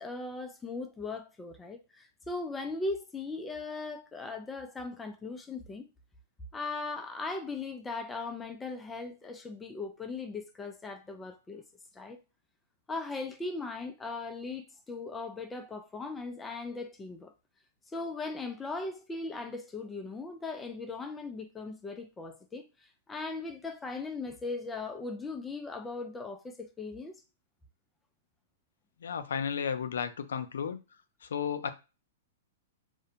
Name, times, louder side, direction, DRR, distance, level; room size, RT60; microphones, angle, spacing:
voice 1, 0.0-5.9 6.5-11.6 11.9-12.2 12.9-17.3 17.9-22.7 23.1-27.2, left 3 dB, 10° left, 0.3 m, -38 dB
voice 2, 29.0-30.8 31.2-31.7, left 7 dB, 85° left, 0.4 m, -33 dB
2.5 x 2.1 x 2.8 m
hypercardioid pair, 140°, 0 cm